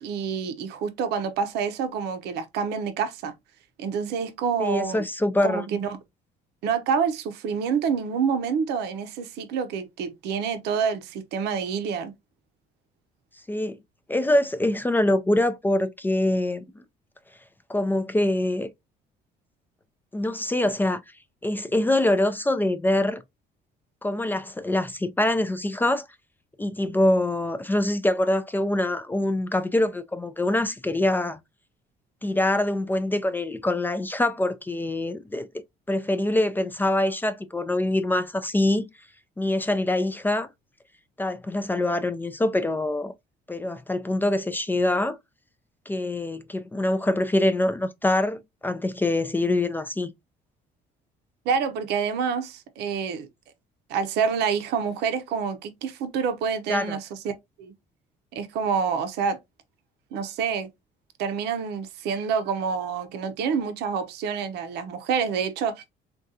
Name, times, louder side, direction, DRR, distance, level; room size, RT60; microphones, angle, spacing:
voice 1, 0.0-3.3 3.8-5.0 5.4-6.0 6.6-12.1 51.5-53.3 53.9-57.3 57.6-57.7 58.3-59.4 60.1-60.7 61.2-65.8, right 6 dB, 80° right, 0.6 m, -27 dB
voice 2, 4.6-5.7 13.5-13.8 14.1-16.6 17.7-18.7 20.1-21.0 21.4-23.2 24.0-26.0 26.6-31.4 32.2-35.5 35.9-38.9 39.4-40.5 41.2-43.1 43.5-45.2 45.9-50.1 56.7-57.0, left 1 dB, 10° left, 0.3 m, -24 dB
3.6 x 2.3 x 2.7 m
cardioid pair, 110°, 17 cm